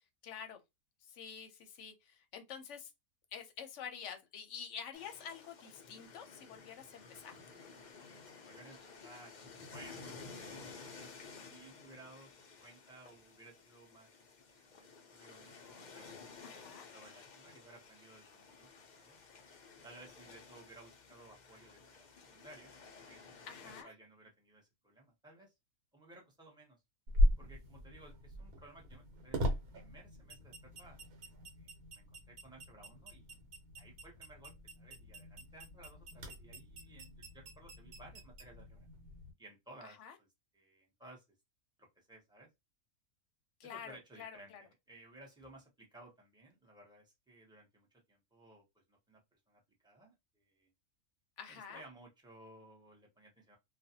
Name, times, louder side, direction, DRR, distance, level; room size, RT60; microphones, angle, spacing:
voice 1, 0.2-0.6 1.1-2.9 3.3-7.3 16.4-16.9 23.4-23.9 39.8-40.1 43.6-44.6 51.4-51.8, left 7 dB, 65° left, 0.8 m, -48 dB
sound 1, 4.9-23.8, left 4 dB, 80° left, 0.4 m, -54 dB
voice 2, 8.3-9.4 9.7-11.1 11.5-12.3 12.6-14.1 14.5-16.6 16.9-19.2 19.8-22.8 23.1-23.5 23.8-25.5 25.9-26.8 27.4-31.3 31.6-33.3 33.7-38.9 39.4-40.3 40.5-41.2 41.8-42.5 43.6-49.2 49.5-50.1 50.4-50.7 51.5-53.6, right 2 dB, 5° right, 0.5 m, -58 dB
sound 2, 27.1-39.3, equal, 75° right, 1.2 m, -38 dB
2.5 x 2.2 x 2.7 m
omnidirectional pair, 1.6 m